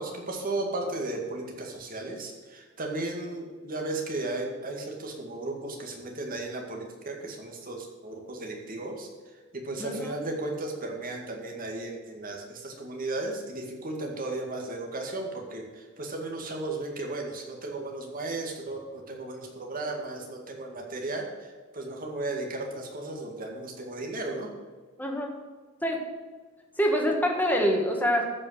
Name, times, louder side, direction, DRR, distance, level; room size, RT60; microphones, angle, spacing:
voice 1, 0.0-24.5, right 2 dB, 45° right, 1 dB, 2.1 m, -35 dB
voice 2, 9.8-10.1 25.0-25.3 25.8-26.0 26.8-28.2, equal, 10° left, 1 dB, 1.7 m, -25 dB
14.0 x 5.5 x 6.5 m, 1.4 s
head